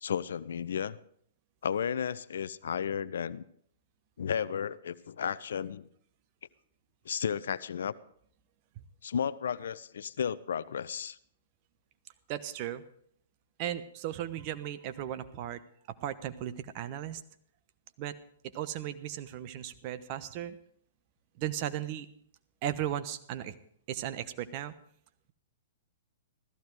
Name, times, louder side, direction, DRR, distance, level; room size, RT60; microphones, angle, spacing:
voice 1, 0.0-1.0 1.6-3.4 4.2-5.9 7.0-7.9 9.0-11.2, left 7 dB, 70° left, 18 dB, 0.6 m, -33 dB
voice 2, 12.3-12.8 13.6-15.6 15.9-17.2 18.0-18.2 18.4-20.6 21.4-22.1 22.6-23.5 23.9-24.7, right 11 dB, 45° right, 12 dB, 1.0 m, -36 dB
15.5 x 14.0 x 4.7 m, 0.64 s
hypercardioid pair, 115°, 0 cm